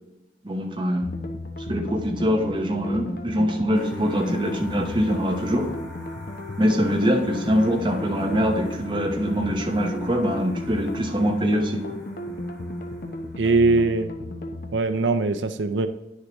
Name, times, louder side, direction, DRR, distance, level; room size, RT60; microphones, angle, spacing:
voice 1, 0.4-1.1 1.7-5.7 6.6-11.8, equal, 25° right, 2 dB, 1.0 m, -23 dB
sound 1, 1.0-14.7, left 1 dB, 55° left, 0.8 m, -35 dB
sound 2, 3.7-13.5, left 3 dB, ahead, 2.2 m, -46 dB
voice 2, 13.4-14.1 14.7-15.9, right 3 dB, 85° right, 10 dB, 0.5 m, -21 dB
9.8 x 6.5 x 3.0 m, 0.95 s
head